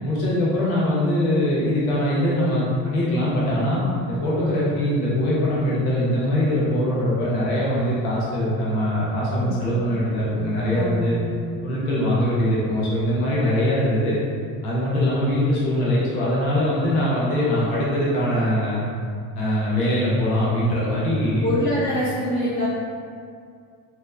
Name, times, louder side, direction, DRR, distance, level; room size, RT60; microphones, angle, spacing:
voice 1, 0.0-11.2 11.6-14.2 14.6-18.8 19.3-21.4, left 1 dB, 90° left, -7 dB, 0.8 m, -22 dB
voice 2, 10.7-11.4 17.5-17.7 21.4-22.7, left 1 dB, 25° left, -9 dB, 0.7 m, -26 dB
3.2 x 2.9 x 2.2 m, 2.3 s
supercardioid pair, 85°, 42 cm